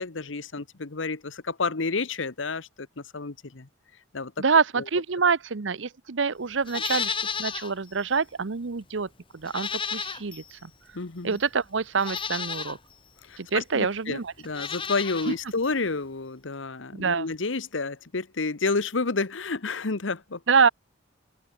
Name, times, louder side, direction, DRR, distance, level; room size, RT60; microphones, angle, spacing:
voice 1, 0.0-3.7 4.1-4.4 4.8-4.9 10.9-11.4 13.3-20.4, left 3 dB, 80° left, 1.2 m, -30 dB
voice 2, 4.4-9.1 9.3-10.7 11.2-12.8 13.4-14.3 15.3-15.4 16.9-17.3 20.5-20.7, right 5 dB, 75° right, 0.8 m, -26 dB
Livestock farm animals working animals, 6.6-7.7 8.1-8.2 9.4-10.5 11.3-11.4 12.0-12.8 14.4-15.4 15.6-15.7, left 6 dB, 25° left, 1.7 m, -32 dB
open air
head